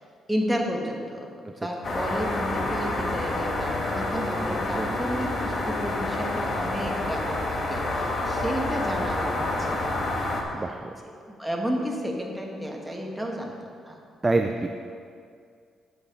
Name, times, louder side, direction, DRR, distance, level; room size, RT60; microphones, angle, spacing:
voice 1, 0.3-1.3 1.6-10.1 10.5-10.7 11.0-13.5 13.8-14.0, equal, 5° right, -1 dB, 1.6 m, -32 dB
sound 1, 1.8-10.4, left 2 dB, 45° left, 1.5 m, -28 dB
voice 2, 14.2-14.7, right 3 dB, 20° right, 5 dB, 0.5 m, -25 dB
9.6 x 6.9 x 5.5 m, 2.3 s
cardioid pair, 90°, 0 cm